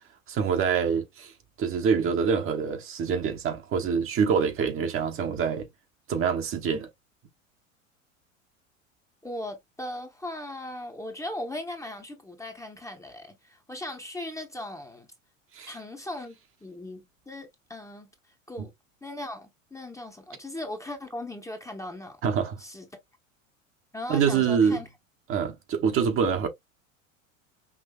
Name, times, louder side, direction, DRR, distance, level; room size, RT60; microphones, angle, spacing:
voice 1, 0.3-1.3 1.6-5.7 6.1-6.9 15.5-15.8 22.2-22.6 24.1-24.8 25.3-26.5, right 6 dB, 30° right, 0.9 m, -25 dB
voice 2, 9.2-15.1 15.7-18.1 18.5-18.7 19.0-22.2 22.6-22.9 23.9-24.9, left 1 dB, 5° left, 0.9 m, -38 dB
5.7 x 2.6 x 2.3 m
figure-of-eight pair, 80°, 40 cm